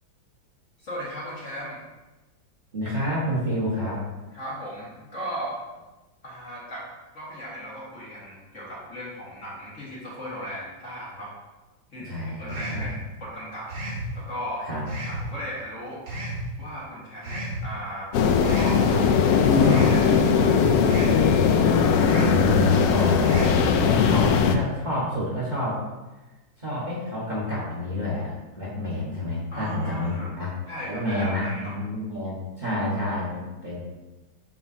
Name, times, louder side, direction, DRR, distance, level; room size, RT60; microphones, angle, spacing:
voice 1, 0.8-1.8 4.3-5.6 6.2-6.9 7.1-11.3 11.9-13.7 14.1-14.6 15.1-16.0 16.6-18.1 18.5-20.6 29.5-30.3 30.7-31.7, equal, 40° left, -7 dB, 1.9 m, -37 dB
voice 2, 2.7-4.1 12.0-12.9 14.6-14.8 21.9-25.8 26.6-30.5 30.9-33.8, left 1 dB, 25° right, -8 dB, 1.5 m, -28 dB
sound 1, 12.5-12.9 13.7-14.1 14.9-15.2 16.1-16.4 17.2-17.6 18.4-18.8 19.6-20.0 20.8-21.2 22.0-22.4 23.2-23.6, right 1 dB, 65° right, 2.7 m, -32 dB
sound 2, 18.1-24.6, left 6 dB, 75° left, 0.8 m, -19 dB
6.9 x 5.8 x 2.7 m, 1.1 s
omnidirectional pair, 2.1 m